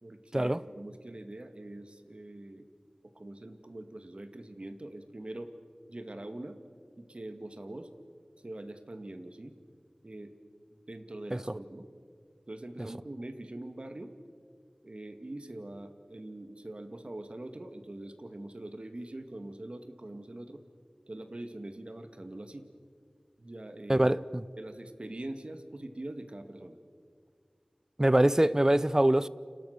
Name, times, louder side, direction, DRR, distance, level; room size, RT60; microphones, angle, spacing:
voice 1, 0.0-2.7 3.0-5.5 5.9-6.6 7.0-7.9 8.4-9.5 10.0-10.3 10.9-11.9 12.5-14.1 14.8-20.6 21.1-22.7 23.4-24.1 24.6-26.8, right 1 dB, 55° right, 2.2 m, -43 dB
voice 2, 23.9-24.4 28.0-29.3, right 1 dB, 25° right, 0.7 m, -24 dB
29.5 x 27.0 x 6.7 m
wide cardioid pair, 50°, 2 cm